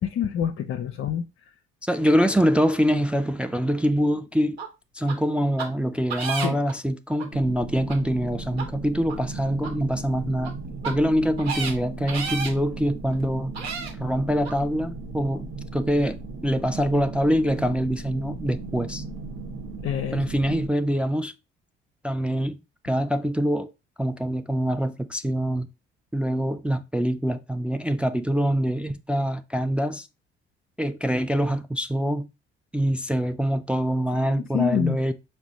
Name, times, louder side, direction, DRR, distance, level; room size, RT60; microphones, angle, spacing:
voice 1, 0.0-1.2 6.4-6.6 19.8-20.3 34.3-35.0, left 9 dB, 45° left, 0.6 m, -26 dB
voice 2, 1.8-4.6 4.9-10.5 10.8-13.5 14.0-15.5 15.7-16.2 16.4-19.0 20.1-21.3 22.0-22.6 22.8-23.7 24.0-25.7 26.1-30.1 30.8-32.3 32.7-35.1, equal, 5° right, 0.4 m, -24 dB
sound 1, 4.6-4.7 5.1-5.2 5.6-5.7 6.1-6.7 7.2-7.3 7.9-8.0 8.5-8.6 9.1-9.2 9.6-9.7 10.4-10.5 10.8-10.9 11.4-11.7 12.1-12.5 13.1-13.2 13.5-13.9 14.4-14.5, right 5 dB, 85° right, 1.0 m, -31 dB
sound 2, 7.3-20.7, right 3 dB, 55° right, 1.0 m, -37 dB
5.9 x 2.1 x 4.0 m
figure-of-eight pair, 50°, 31 cm